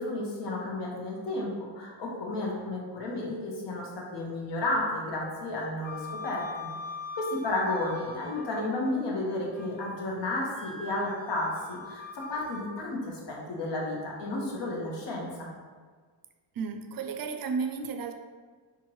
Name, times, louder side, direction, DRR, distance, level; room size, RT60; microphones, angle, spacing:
voice 1, 0.0-6.7 7.1-15.5, left 2 dB, 65° left, -2 dB, 1.1 m, -32 dB
Wind instrument woodwind instrument, 5.8-8.8 9.2-10.0 10.5-12.7, left 4 dB, 5° left, 0.8 m, -42 dB
voice 2, 16.6-18.1, right 5 dB, 50° right, 6 dB, 0.4 m, -33 dB
4.5 x 2.5 x 3.0 m, 1.5 s
cardioid pair, 90°, 46 cm